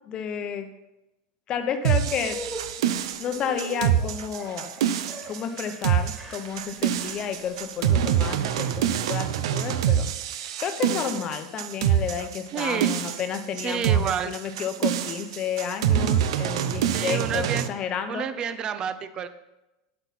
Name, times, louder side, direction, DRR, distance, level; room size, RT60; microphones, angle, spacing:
voice 1, 0.1-0.7 1.5-2.4 3.2-4.7 5.3-18.2, left 7 dB, 30° left, 7 dB, 0.8 m, -31 dB
sound 1, 1.8-17.7, right 10 dB, 80° right, 0.6 m, -25 dB
sound 2, 2.1-9.5, equal, 5° right, 2.0 m, -43 dB
voice 2, 12.5-13.0 13.6-14.4 16.9-17.7 18.1-19.3, right 7 dB, 25° right, 12 dB, 0.5 m, -29 dB
8.9 x 8.1 x 4.2 m, 0.98 s
supercardioid pair, 145°, 3 cm